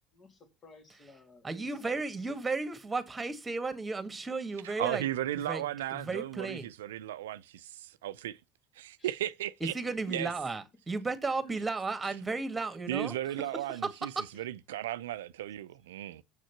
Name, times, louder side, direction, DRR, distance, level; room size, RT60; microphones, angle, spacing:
voice 1, 0.1-2.3 9.0-9.2 9.6-10.5 14.3-14.5, left 2 dB, 35° left, 2.4 m, -56 dB
voice 2, 1.4-5.0 5.3-5.6 5.9-6.7 9.6-14.3, right 3 dB, 20° right, 1.8 m, -34 dB
voice 3, 4.6-8.4 8.8-9.7 10.1-10.3 12.9-14.1 14.4-16.2, right 13 dB, 80° right, 0.4 m, -35 dB
7.4 x 6.3 x 5.7 m
hypercardioid pair, 75°, 0 cm